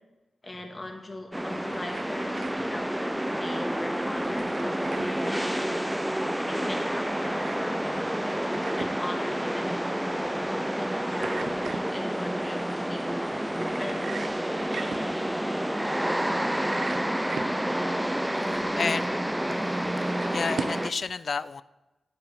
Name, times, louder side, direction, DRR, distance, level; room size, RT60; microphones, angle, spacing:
voice 1, 0.4-6.1 6.4-14.2 17.6-19.2, left 2 dB, 25° left, 2 dB, 1.5 m, -41 dB
sound 1, 1.3-20.9, right 1 dB, 5° right, 0.4 m, -29 dB
sound 2, 1.4-20.9, right 5 dB, 80° right, 0.4 m, -42 dB
voice 2, 18.5-19.2 20.0-21.6, left 5 dB, 60° left, 16 dB, 0.3 m, -31 dB
10.5 x 8.6 x 3.5 m, 1.0 s
wide cardioid pair, 90°, 0 cm